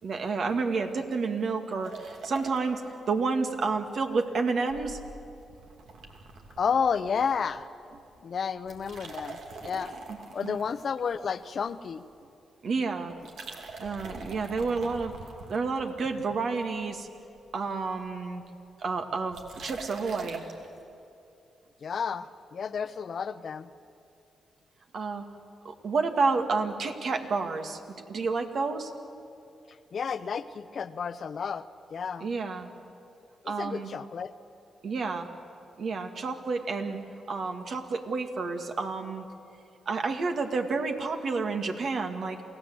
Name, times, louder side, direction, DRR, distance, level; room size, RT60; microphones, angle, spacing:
voice 1, 0.0-5.0 10.1-10.6 12.6-13.3 13.8-15.1 15.5-17.1 17.5-18.4 18.8-20.4 24.9-25.2 25.6-27.8 28.1-28.9 32.2-32.7 33.5-33.9 34.8-35.3 35.8-37.0 37.3-39.2 39.9-42.4, right 4 dB, 65° right, 5 dB, 2.1 m, -30 dB
sound 1, 1.8-3.7 4.0-4.1 4.7-7.6 7.8-8.1 8.6-11.9 13.1-16.1 16.6-17.1 17.4-17.5 17.7-17.8 17.9-18.2 19.3-20.7, right 3 dB, 80° right, 2.6 m, -44 dB
voice 2, 6.6-7.7 8.2-9.9 10.3-12.0 21.8-23.7 29.9-32.3 33.4-34.3, left 6 dB, 60° left, 13 dB, 0.8 m, -31 dB
28.0 x 16.5 x 8.0 m, 2.6 s
cardioid pair, 60°, 0 cm